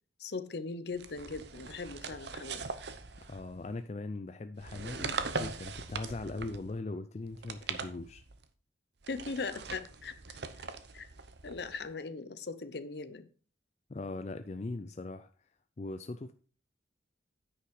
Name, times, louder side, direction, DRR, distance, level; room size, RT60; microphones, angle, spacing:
voice 1, 0.2-2.6 9.1-10.4 10.9-11.1 11.4-13.3, left 4 dB, 60° left, 12 dB, 0.7 m, -39 dB
sound 1, 0.9-3.7 4.6-6.8 7.3-8.5 9.0-11.9, right 4 dB, 65° right, 0.8 m, -41 dB
voice 2, 3.2-8.2 13.9-15.3 15.8-16.3, left 2 dB, 35° left, 9 dB, 0.4 m, -40 dB
9.7 x 5.7 x 4.8 m, 0.39 s
head